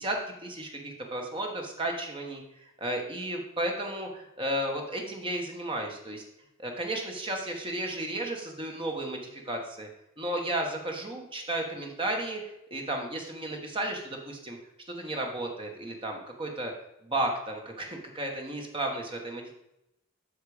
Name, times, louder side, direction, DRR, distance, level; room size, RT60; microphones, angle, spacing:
voice 1, 0.0-6.2 6.6-9.9 10.2-12.4 12.7-14.6 14.9-16.7 17.0-19.5, right 1 dB, 25° right, 2 dB, 1.4 m, -33 dB
8.6 x 5.7 x 5.0 m, 0.87 s
head